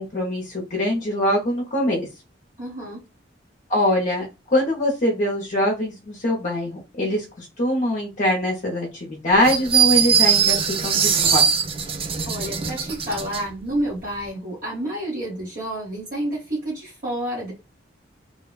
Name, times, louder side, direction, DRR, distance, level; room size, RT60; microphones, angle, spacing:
voice 1, 0.0-2.1 3.7-11.4, left 1 dB, 45° left, -2 dB, 0.6 m, -23 dB
voice 2, 2.6-3.0 12.2-17.5, right 1 dB, 50° right, -7 dB, 1.2 m, -29 dB
sound 1, 9.4-13.4, right 7 dB, 30° right, 0.3 m, -20 dB
2.8 x 2.1 x 2.3 m, 0.28 s
head